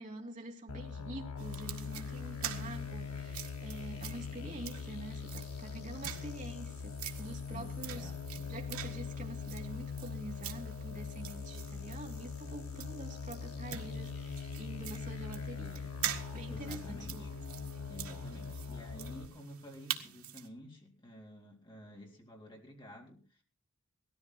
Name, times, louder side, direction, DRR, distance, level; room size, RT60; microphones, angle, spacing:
voice 1, 0.0-8.1 8.5-15.9 16.3-17.3, right 1 dB, 35° right, 1 dB, 2.8 m, -46 dB
sound 1, 0.7-19.3, left 5 dB, 85° left, 1.2 m, -42 dB
sound 2, 1.4-20.5, right 10 dB, 80° right, 1.8 m, -46 dB
voice 2, 3.9-4.6 7.5-8.5 16.5-17.3 17.9-23.4, equal, 20° left, 0 dB, 3.8 m, -51 dB
17.5 x 14.0 x 4.2 m, 0.36 s
head